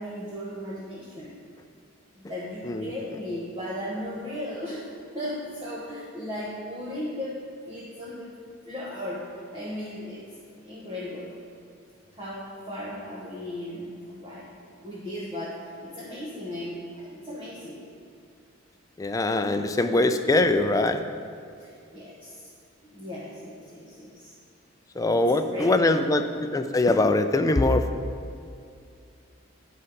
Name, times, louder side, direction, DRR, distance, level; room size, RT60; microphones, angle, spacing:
voice 1, 0.0-1.4 2.3-4.9 5.1-7.4 7.7-8.4 8.6-10.3 10.6-11.4 12.1-14.5 14.8-17.9 21.6-22.5 22.8-24.3 25.1-26.2, left 1 dB, 25° right, -6 dB, 1.0 m, -36 dB
voice 2, 19.0-21.0 25.0-27.9, left 2 dB, 15° left, 7 dB, 0.3 m, -22 dB
11.0 x 4.2 x 5.1 m, 2.4 s
head